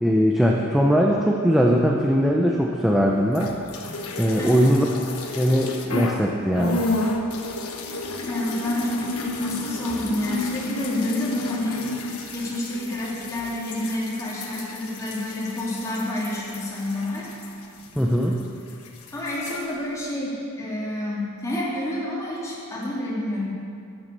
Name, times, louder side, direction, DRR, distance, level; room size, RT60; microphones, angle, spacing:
voice 1, 0.0-3.5 4.2-4.9 5.4-6.8 18.0-18.3, equal, ahead, -1 dB, 0.6 m, -20 dB
sound 1, 3.3-6.2 6.5-18.4 18.7-19.6, left 2 dB, 80° left, 1.2 m, -31 dB
voice 2, 4.4-4.7 8.3-11.9 12.3-17.3 19.1-23.5, left 1 dB, 15° left, -6 dB, 2.6 m, -29 dB
9.5 x 9.2 x 6.7 m, 2.4 s
head